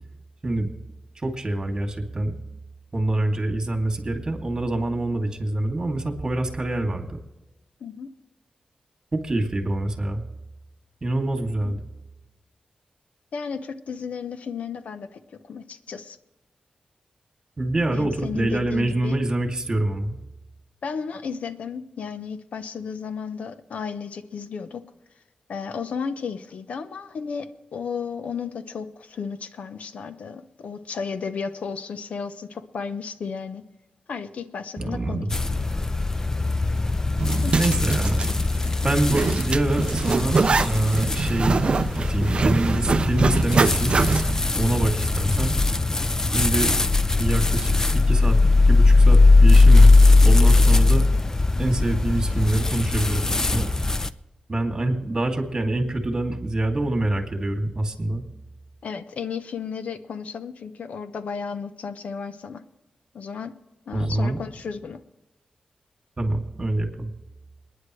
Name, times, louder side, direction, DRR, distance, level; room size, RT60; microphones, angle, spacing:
voice 1, 1.2-2.4 2.9-7.2 9.1-10.3 11.0-11.8 17.6-20.2 34.8-35.3 37.5-38.3 38.8-41.6 41.9-44.0 44.6-45.6 46.3-46.7 47.2-47.7 48.1-50.0 50.2-51.1 51.6-53.7 54.5-58.2 63.9-64.4 66.2-67.1, right 2 dB, 30° right, 3 dB, 2.6 m, -25 dB
voice 2, 7.8-8.1 11.6-11.7 13.3-16.2 17.9-19.2 20.8-24.8 25.5-33.6 34.1-35.3 37.4-37.6 58.8-62.6 63.1-63.6 63.9-65.0, left 5 dB, 85° left, 10 dB, 0.9 m, -33 dB
sound 1, 35.3-54.1, left 3 dB, 25° left, 0.6 m, -19 dB
Zipper (clothing), 37.2-44.4, right 4 dB, 50° right, 0.5 m, -24 dB
27.5 x 10.5 x 3.3 m, 1.0 s
wide cardioid pair, 85°, 2 cm